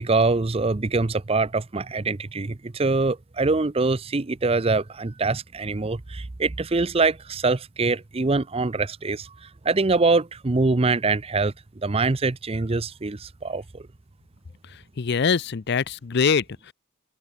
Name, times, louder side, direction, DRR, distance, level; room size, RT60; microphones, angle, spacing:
voice 1, 0.0-9.3 9.6-11.5 11.8-13.6, right 3 dB, 25° right, 0.6 m, -24 dB
voice 2, 15.0-16.7, left 5 dB, 50° left, 0.5 m, -23 dB
open air
head